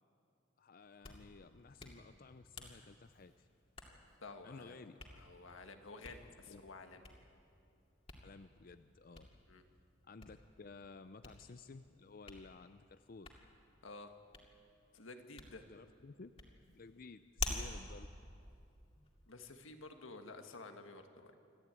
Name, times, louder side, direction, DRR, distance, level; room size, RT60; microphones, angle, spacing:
voice 1, 0.6-3.5 4.4-5.0 6.5-6.6 8.2-9.3 10.1-13.3 15.7-16.3 16.7-18.1, left 3 dB, 45° left, 11 dB, 0.5 m, -55 dB
Hands, 0.8-19.3, left 3 dB, 30° left, 2.4 m, -51 dB
voice 2, 4.2-4.8 5.1-7.1 9.5-9.6 13.8-14.2 14.9-15.7 19.3-21.4, left 3 dB, 90° left, 6 dB, 1.7 m, -52 dB
25.5 x 14.0 x 9.1 m, 2.6 s
head